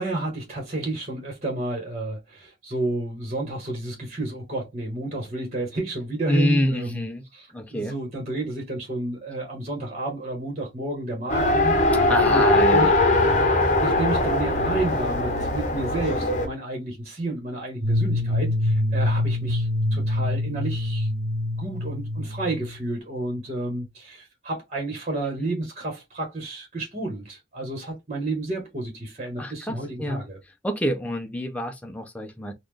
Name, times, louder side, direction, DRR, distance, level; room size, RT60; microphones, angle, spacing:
voice 1, 0.0-12.9 13.8-21.1 21.5-30.4, right 2 dB, 40° right, 1.4 m, -31 dB
voice 2, 6.3-7.2 7.5-8.0 12.1-12.9 29.4-30.2 30.6-32.5, equal, 10° left, 0.5 m, -26 dB
Race car auto racing, 11.3-16.5, left 2 dB, 40° left, 0.9 m, -21 dB
sound 1, 17.8-22.9, left 1 dB, 65° right, 1.1 m, -25 dB
4.1 x 2.4 x 3.3 m
head